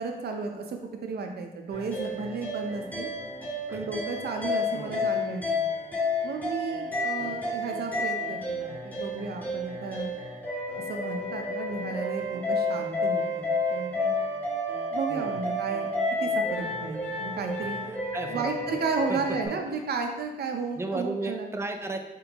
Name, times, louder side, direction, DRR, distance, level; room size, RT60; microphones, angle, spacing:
voice 1, 0.0-3.1 3.7-5.7 6.2-10.1 10.7-14.2 14.9-15.9 16.2-17.9 18.3-21.5, right 4 dB, 90° right, 3 dB, 0.6 m, -33 dB
sound 1, 1.7-19.5, left 2 dB, 10° left, 0.8 m, -31 dB
voice 2, 4.7-5.1 7.2-7.6 15.1-15.6 17.8-18.8 19.1-19.4 20.8-22.0, right 2 dB, 15° right, 5 dB, 0.3 m, -35 dB
4.4 x 3.7 x 2.9 m, 1.1 s
wide cardioid pair, 175°, 16 cm